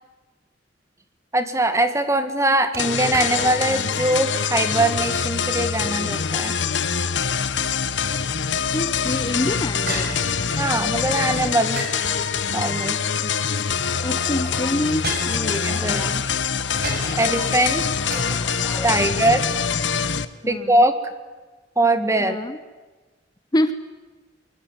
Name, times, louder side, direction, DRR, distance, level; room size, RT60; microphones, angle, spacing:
voice 1, 1.3-6.6 10.6-11.9 12.5-13.0 15.5-16.1 17.2-17.9 18.8-19.4 20.5-20.9 21.8-22.4, right 1 dB, 15° right, 9 dB, 2.1 m, -21 dB
sound 1, 2.7-3.9 4.3-4.4 5.0-5.4 7.3-8.1 9.9-10.9 11.8-12.9 14.1-14.2 15.0-15.9 16.8-17.4 18.1-18.2, right 2 dB, 60° right, 6.2 m, -34 dB
sound 2, 2.8-20.3, left 6 dB, 80° left, 1.3 m, -24 dB
voice 2, 8.7-10.2 13.2-13.3 13.6-13.8 14.0-15.6 15.9-16.2 19.0-19.3 20.4-20.9 22.2-22.6 23.5-23.7, left 1 dB, 20° left, 11 dB, 0.9 m, -27 dB
sound 3, 13.8-19.3, left 1 dB, 5° left, 3.9 m, -38 dB
24.0 x 24.0 x 9.2 m, 1.3 s
head